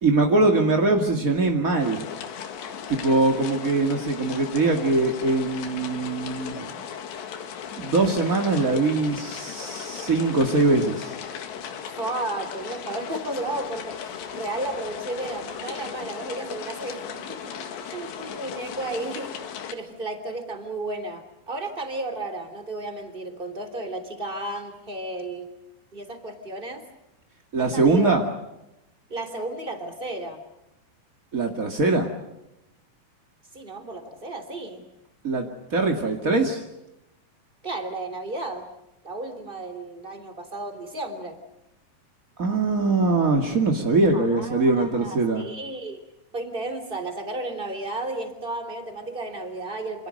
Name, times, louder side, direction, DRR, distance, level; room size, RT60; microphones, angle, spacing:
voice 1, 0.0-2.0 2.9-6.8 7.8-11.1 27.5-28.2 31.3-32.1 35.2-36.6 42.4-45.4, right 3 dB, 45° right, 2 dB, 1.0 m, -22 dB
sound 1, 1.8-19.7, left 8 dB, 75° left, 4.1 m, -37 dB
voice 2, 11.8-25.5 25.9-26.8 27.6-28.1 29.1-30.4 33.5-34.8 37.6-38.7 39.0-41.4 44.1-46.0 46.3-50.1, right 2 dB, 15° right, 8 dB, 2.6 m, -33 dB
28.0 x 27.0 x 6.6 m, 0.91 s
omnidirectional pair, 5.2 m